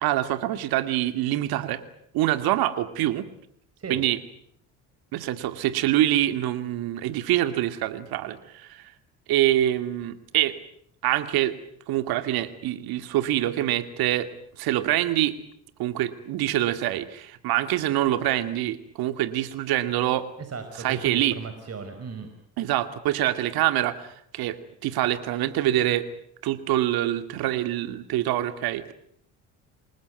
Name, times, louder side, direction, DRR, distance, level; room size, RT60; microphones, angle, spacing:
voice 1, 0.0-1.8 2.1-3.3 3.9-4.2 5.1-8.9 9.3-10.6 11.0-11.5 11.9-14.3 14.6-15.3 15.8-20.3 20.8-21.4 22.6-24.6 24.8-26.1 26.4-28.9, right 13 dB, 65° right, 11 dB, 2.3 m, -25 dB
voice 2, 20.5-22.3, right 5 dB, 40° right, 7 dB, 4.7 m, -36 dB
28.0 x 20.0 x 9.4 m, 0.72 s
hypercardioid pair, 60°, 39 cm